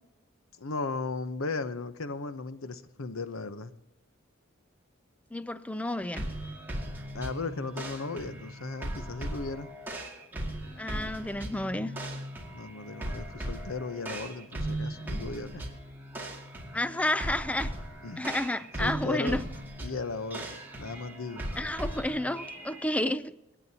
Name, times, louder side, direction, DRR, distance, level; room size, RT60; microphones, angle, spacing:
voice 1, 0.6-3.7 7.1-9.7 12.5-15.6 18.0-18.3 18.8-19.4 19.8-21.6, left 3 dB, 90° left, 12 dB, 0.8 m, -36 dB
voice 2, 5.3-6.3 10.8-11.9 16.7-17.7 18.2-19.5 21.6-23.3, left 1 dB, 5° left, 13 dB, 0.4 m, -31 dB
sound 1, 6.1-22.8, right 1 dB, 10° right, 2.3 m, -38 dB
27.0 x 9.2 x 2.8 m, 0.95 s
head